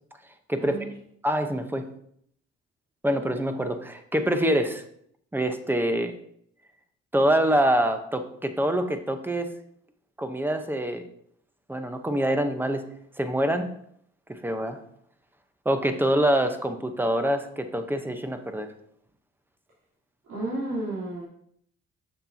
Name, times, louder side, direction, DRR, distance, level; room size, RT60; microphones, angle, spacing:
voice 1, 1.2-1.9 3.0-4.8 5.3-6.1 7.1-9.5 10.2-11.0 11.7-12.8 13.2-13.7 14.3-14.8 15.6-18.7, right 1 dB, 5° right, 7 dB, 0.8 m, -25 dB
voice 2, 20.3-21.2, right 2 dB, 70° right, -10 dB, 3.1 m, -32 dB
7.3 x 6.7 x 2.7 m, 0.68 s
cardioid pair, 90°, 30 cm